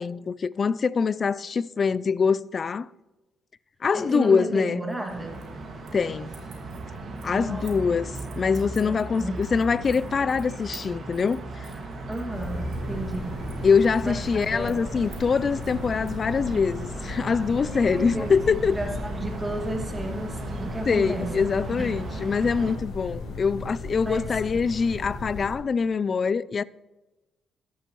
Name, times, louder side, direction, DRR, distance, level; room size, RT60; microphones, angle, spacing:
voice 1, 0.0-2.9 3.8-4.8 5.9-6.3 7.2-8.1 8.4-11.7 13.6-18.8 20.9-26.6, left 5 dB, 40° left, 0.3 m, -24 dB
voice 2, 3.9-5.4 7.3-8.0 8.8-9.4 12.1-13.5 14.0-14.1 14.5-14.9 17.7-18.3 18.7-21.4 21.8-22.0 24.1-24.4, right 1 dB, 10° right, 2.0 m, -33 dB
sound 1, 4.9-6.0 6.3-7.8 8.1-16.2, right 8 dB, 80° right, 1.9 m, -51 dB
sound 2, 5.1-22.8, right 2 dB, 55° right, 1.9 m, -37 dB
sound 3, 12.3-25.6, left 2 dB, 85° left, 2.9 m, -36 dB
13.5 x 10.0 x 3.1 m
cardioid pair, 90°, 0 cm